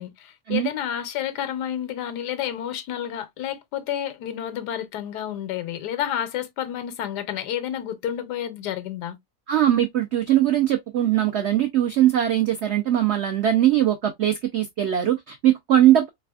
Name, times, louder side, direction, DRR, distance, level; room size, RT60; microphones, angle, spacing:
voice 1, 0.0-9.2, left 10 dB, 90° left, 1.3 m, -30 dB
voice 2, 9.5-16.1, right 12 dB, 80° right, 0.6 m, -20 dB
3.4 x 3.2 x 2.2 m
omnidirectional pair, 1.7 m